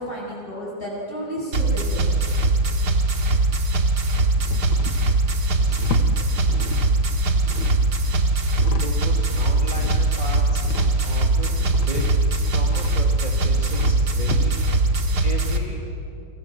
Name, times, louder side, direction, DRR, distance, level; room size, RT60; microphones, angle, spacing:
voice 1, 0.0-2.0, equal, 25° left, -4 dB, 8.4 m, -31 dB
sound 1, 1.5-15.6, right 2 dB, 60° right, 2.4 m, -21 dB
sound 2, 3.4-4.0 4.4-7.0 7.3-9.0 9.3-14.8, left 2 dB, 75° left, 2.1 m, -33 dB
voice 2, 8.7-10.6 11.0-14.9 15.2-15.8, right 1 dB, 25° right, -2 dB, 2.5 m, -36 dB
29.0 x 24.5 x 7.7 m, 2.6 s
omnidirectional pair, 2.1 m